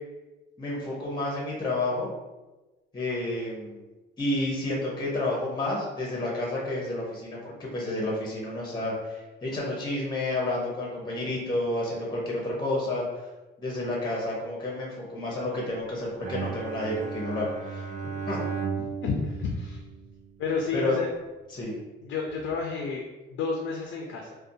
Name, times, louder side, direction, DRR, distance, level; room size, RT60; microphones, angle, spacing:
voice 1, 0.6-2.1 2.9-3.8 4.2-13.0 13.6-17.9 18.3-18.4 20.7-21.0 21.5-21.8, left 2 dB, 20° left, -4 dB, 0.7 m, -30 dB
Bowed string instrument, 16.2-20.6, right 6 dB, 40° right, 0.4 m, -35 dB
voice 2, 18.8-19.8 20.4-21.1 22.0-24.4, left 4 dB, 70° left, 1 dB, 0.4 m, -31 dB
2.6 x 2.1 x 2.6 m, 1.1 s
cardioid pair, 90°, 20 cm